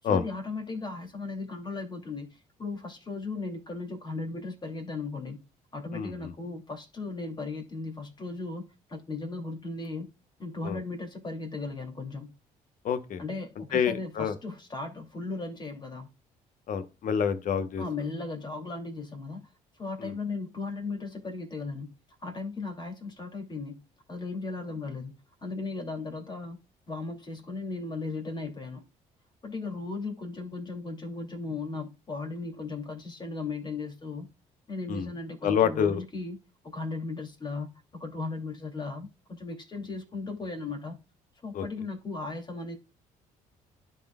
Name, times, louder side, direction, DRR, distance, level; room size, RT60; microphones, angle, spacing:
voice 1, 0.0-5.4 5.7-8.6 8.9-10.1 10.4-12.3 13.2-16.1 17.8-19.5 19.8-21.9 22.2-23.8 24.1-25.1 25.4-26.6 26.9-28.8 29.4-34.3 34.7-36.4 36.6-41.0 41.4-42.8, left 3 dB, 30° left, 2.5 m, -36 dB
voice 2, 12.8-13.2 13.7-14.3 16.7-17.8 20.0-20.1 34.9-35.1 35.4-36.0 41.5-41.6, left 7 dB, 60° left, 1.0 m, -27 dB
12.0 x 4.3 x 2.3 m
supercardioid pair, 80°, 15 cm